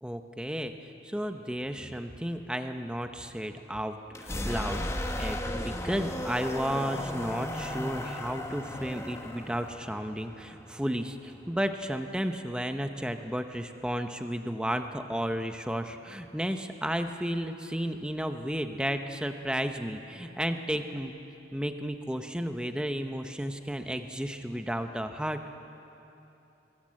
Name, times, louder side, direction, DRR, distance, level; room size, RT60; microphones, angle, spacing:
voice 1, 0.0-4.8 5.2-21.1 21.5-25.4, equal, 5° right, 7 dB, 0.8 m, -33 dB
sound 1, 4.1-11.8, left 1 dB, 15° left, 1.1 m, -36 dB
23.5 x 17.0 x 7.6 m, 3.0 s
head